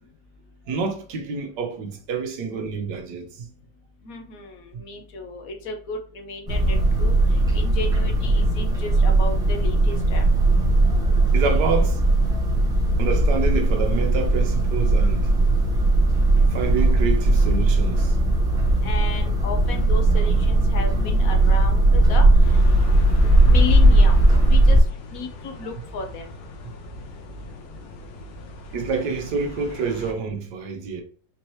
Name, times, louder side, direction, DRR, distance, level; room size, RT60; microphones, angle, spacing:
voice 1, 0.7-3.5 11.3-12.0 13.0-15.3 16.5-18.1 28.7-31.0, right 5 dB, 65° right, 1.4 m, -27 dB
voice 2, 4.0-10.2 18.8-22.6 23.4-24.2 24.5-24.8 25.1-26.3, left 3 dB, 60° left, 1.0 m, -34 dB
sound 1, 6.5-24.8, right 1 dB, 5° right, 0.7 m, -18 dB
sound 2, 22.4-30.1, left 1 dB, 80° left, 1.7 m, -39 dB
4.5 x 2.8 x 3.0 m
omnidirectional pair, 2.1 m